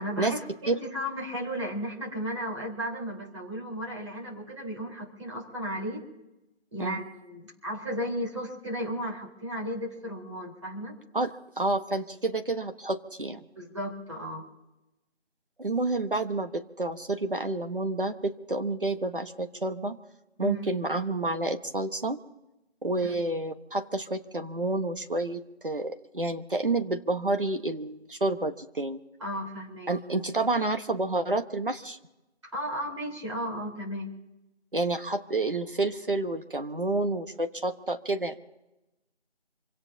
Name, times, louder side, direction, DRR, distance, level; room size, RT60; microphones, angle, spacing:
voice 1, 0.0-6.0 6.7-10.9 13.6-14.4 20.4-20.6 23.0-23.1 29.2-29.9 32.4-34.1, equal, 25° right, -2 dB, 4.1 m, -34 dB
voice 2, 11.1-13.4 15.6-20.0 20.4-22.2 22.8-29.0 29.9-32.0 34.7-38.4, right 2 dB, 50° right, 7 dB, 1.3 m, -29 dB
27.0 x 17.5 x 2.8 m, 0.94 s
figure-of-eight pair, 170°, 33 cm